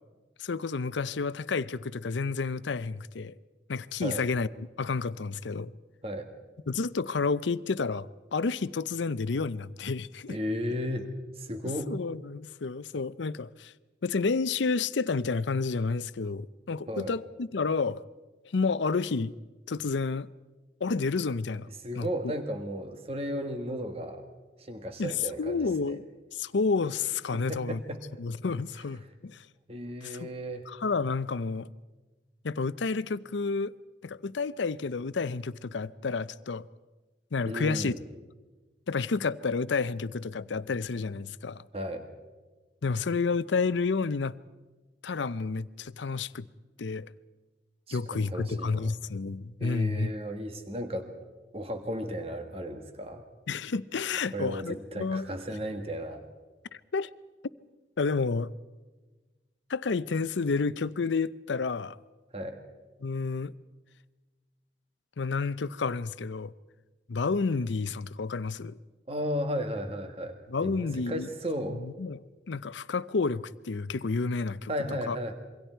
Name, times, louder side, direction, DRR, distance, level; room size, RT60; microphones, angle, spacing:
voice 1, 0.4-3.4 3.7-5.7 6.7-10.4 11.9-13.7 14.0-18.0 18.5-19.3 19.7-20.3 20.8-21.7 22.0-22.1 25.0-26.1 26.3-27.8 28.2-29.5 30.0-30.3 30.7-31.7 32.4-33.7 34.0-36.7 37.3-37.9 38.9-41.6 42.8-44.4 45.0-46.5 46.8-47.1 47.9-50.1 53.5-55.3 56.7-57.1 58.0-58.5 59.7-62.0 63.0-63.5 65.2-66.5 67.1-68.8 70.5-71.3 71.7-72.2 72.5-74.7 75.1-75.2, left 4 dB, 75° left, 0.6 m, -30 dB
voice 2, 10.3-11.9 16.9-17.1 21.8-24.2 24.6-26.0 27.3-28.0 29.7-30.6 37.5-38.0 41.7-42.1 47.9-48.9 49.6-51.1 51.5-53.2 54.3-56.2 62.3-62.6 69.1-71.8 74.7-75.3, equal, 30° right, 1.5 m, -34 dB
27.0 x 23.5 x 4.5 m
head